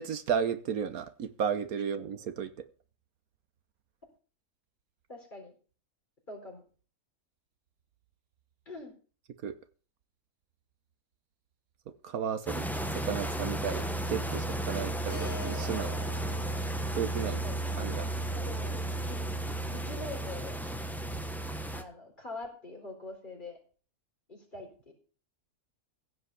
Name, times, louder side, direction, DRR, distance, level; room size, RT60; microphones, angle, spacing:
voice 1, 0.0-2.6 9.4-9.5 12.0-12.6 12.9-15.9 17.0-17.4 17.8-18.1, right 7 dB, 75° right, 1.4 m, -33 dB
voice 2, 5.1-5.5 6.3-6.6 8.7-8.9 17.4-17.6 18.3-19.2 19.7-20.5 21.7-23.6 24.3-24.9, left 2 dB, 30° left, 4.4 m, -44 dB
sound 1, 12.5-21.8, right 1 dB, ahead, 0.8 m, -34 dB
Keyboard (musical), 15.1-19.3, left 2 dB, 70° left, 4.6 m, -48 dB
15.5 x 5.3 x 8.3 m
omnidirectional pair, 1.6 m